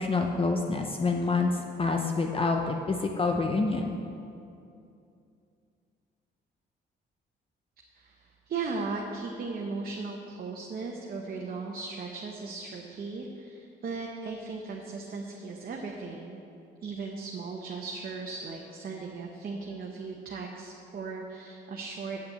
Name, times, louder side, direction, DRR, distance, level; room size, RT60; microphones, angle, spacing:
voice 1, 0.0-4.0, left 3 dB, 25° left, 3 dB, 0.7 m, -27 dB
voice 2, 7.9-16.4 16.8-22.2, right 4 dB, 50° right, 0 dB, 1.0 m, -37 dB
8.2 x 5.8 x 7.7 m, 2.6 s
cardioid pair, 90°, 20 cm